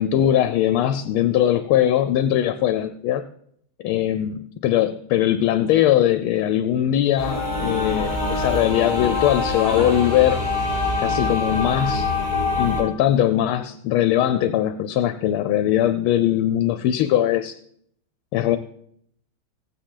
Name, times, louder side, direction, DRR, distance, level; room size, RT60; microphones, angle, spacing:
voice 1, 0.0-3.2 3.8-10.4 11.0-12.1 12.6-17.6 18.3-18.6, left 11 dB, 85° left, 11 dB, 1.5 m, -20 dB
sound 1, 7.2-12.8, left 3 dB, 25° right, 3.7 m, -24 dB
15.5 x 8.8 x 3.8 m, 0.68 s
omnidirectional pair, 2.3 m